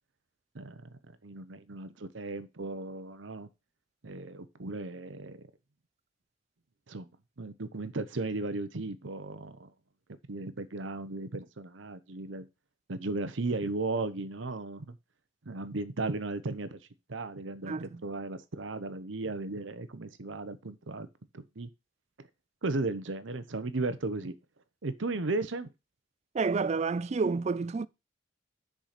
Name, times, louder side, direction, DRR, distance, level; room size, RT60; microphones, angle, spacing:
voice 1, 0.5-0.9 1.2-3.5 4.0-5.5 6.9-7.1 7.4-9.7 10.3-12.5 12.9-15.0 15.5-16.8 17.1-21.1 21.3-21.7 22.2-22.3 22.6-24.3 24.8-25.7, right 3 dB, 75° right, 0.9 m, -35 dB
voice 2, 17.7-18.0 26.3-27.9, right 4 dB, 35° right, 0.4 m, -29 dB
6.5 x 5.0 x 5.9 m
head